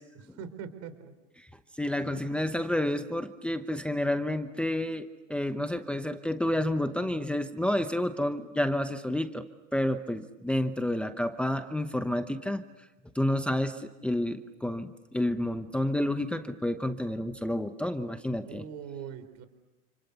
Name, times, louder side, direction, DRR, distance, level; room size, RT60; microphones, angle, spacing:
voice 1, 0.1-1.1 18.4-19.4, right 7 dB, 50° right, 11 dB, 3.8 m, -42 dB
voice 2, 1.8-9.4 9.7-12.6 13.1-18.6, left 1 dB, 5° left, 8 dB, 0.9 m, -30 dB
29.0 x 28.0 x 7.0 m, 1.0 s
supercardioid pair, 140°, 37 cm